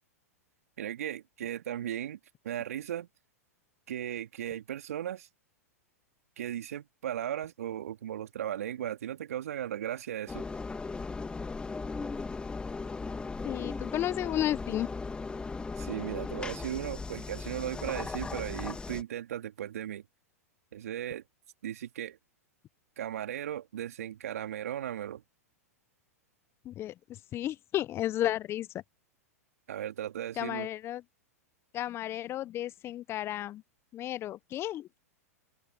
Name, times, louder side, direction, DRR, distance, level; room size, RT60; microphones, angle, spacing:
voice 1, 0.8-2.2 2.4-3.1 3.9-5.3 6.4-10.4 15.8-20.0 20.7-21.2 21.6-22.2 23.0-25.2 29.7-30.7, right 11 dB, 70° right, 2.6 m, -36 dB
Engine, 10.3-19.0, left 4 dB, 10° left, 2.5 m, -37 dB
voice 2, 13.4-14.9 26.6-26.9 27.3-28.7 30.4-31.0 31.7-33.6 33.9-34.9, left 13 dB, 30° left, 0.8 m, -33 dB
open air
hypercardioid pair, 105°, 8 cm